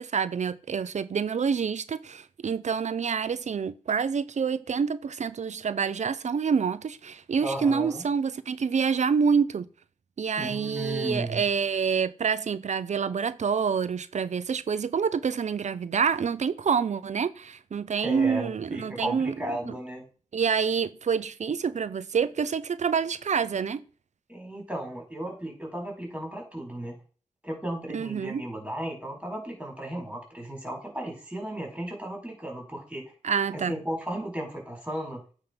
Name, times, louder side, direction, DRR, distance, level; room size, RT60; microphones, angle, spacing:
voice 1, 0.0-9.7 10.2-19.3 20.3-23.8 27.9-28.4 33.2-33.7, right 6 dB, 80° right, 0.6 m, -27 dB
voice 2, 7.4-8.0 10.4-11.4 18.0-20.1 24.3-27.0 27.4-33.1 33.5-35.2, right 1 dB, 10° right, 4.7 m, -35 dB
9.0 x 3.7 x 5.2 m
wide cardioid pair, 60°, 12 cm